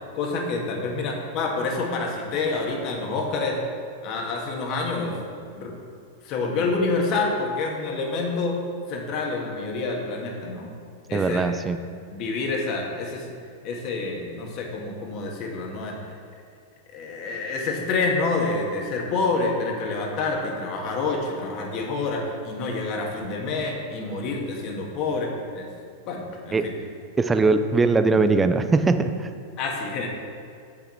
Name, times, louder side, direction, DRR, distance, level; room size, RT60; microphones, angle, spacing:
voice 1, 0.1-3.6 4.0-5.2 5.5-5.7 6.2-8.6 8.9-10.7 11.1-11.5 12.1-13.3 13.6-16.0 16.9-25.7 26.1-26.7 29.6-30.1, left 3 dB, 45° left, 0 dB, 1.8 m, -27 dB
voice 2, 11.1-11.8 26.5-26.7 27.2-29.3, right 3 dB, 15° right, 9 dB, 0.5 m, -21 dB
8.1 x 6.8 x 4.5 m, 2.3 s
hypercardioid pair, 100°, 0 cm